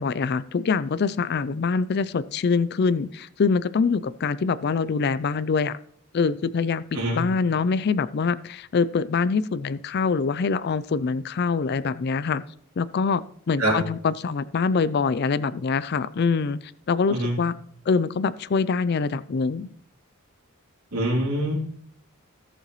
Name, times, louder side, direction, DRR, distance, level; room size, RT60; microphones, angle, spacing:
voice 1, 0.0-5.8 6.1-12.4 12.8-16.6 16.9-17.5 17.9-19.7, left 5 dB, 50° left, 16 dB, 0.4 m, -24 dB
voice 2, 20.9-21.5, right 1 dB, 90° right, -4 dB, 3.1 m, -24 dB
18.0 x 6.8 x 3.1 m, 0.64 s
head